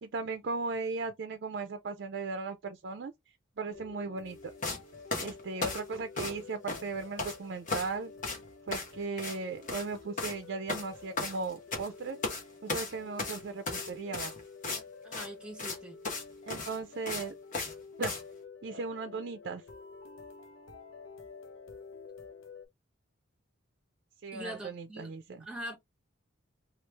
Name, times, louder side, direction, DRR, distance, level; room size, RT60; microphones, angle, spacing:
voice 1, 0.0-3.1 3.6-4.4 5.2-8.1 8.7-12.2 12.6-14.3 16.5-17.3 18.0-18.1 18.6-19.6 24.2-25.5, right 4 dB, 55° right, 0.4 m, -37 dB
sound 1, 3.7-22.7, left 4 dB, 85° left, 0.8 m, -50 dB
sound 2, 4.6-4.8 5.1-6.4 6.7-7.4 7.7-7.9 8.2-8.4 8.7-8.9 9.2-9.4 9.6-9.9 10.2-10.4 10.7-11.9 12.2-12.4 12.7-14.8 15.1-15.3 15.6-15.8 16.0-16.2 16.5-17.7 18.0-18.2, left 3 dB, 40° left, 1.0 m, -35 dB
voice 2, 15.0-16.0 24.3-25.1 25.4-25.8, equal, 5° right, 1.2 m, -42 dB
3.1 x 2.4 x 3.3 m
head